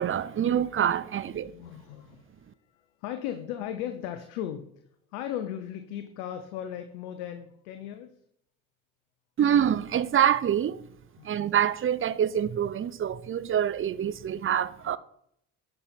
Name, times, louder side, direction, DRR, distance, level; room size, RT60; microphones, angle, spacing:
voice 1, 0.0-1.5 9.4-10.8 11.2-15.0, right 9 dB, 30° right, 0.6 m, -26 dB
voice 2, 1.3-4.7 5.1-8.1 11.2-11.4, left 10 dB, 85° left, 0.8 m, -37 dB
9.7 x 5.5 x 4.4 m
supercardioid pair, 65°, 40 cm